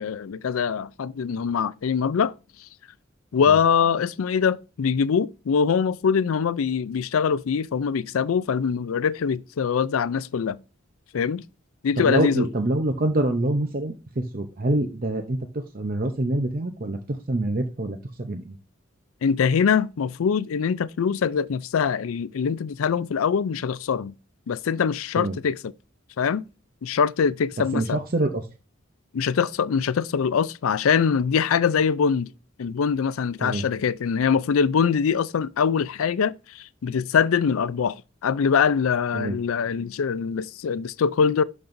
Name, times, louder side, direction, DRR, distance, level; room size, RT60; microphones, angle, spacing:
voice 1, 0.0-2.3 3.3-10.6 11.1-11.4 11.8-12.5 19.2-24.1 24.5-25.7 26.2-26.4 26.8-28.0 29.1-32.3 32.6-41.4, left 6 dB, 85° left, 0.4 m, -23 dB
voice 2, 12.0-18.6 25.2-25.4 27.7-28.4 33.4-33.6 39.1-39.3, right 1 dB, 45° right, 0.7 m, -26 dB
11.5 x 5.3 x 2.6 m
head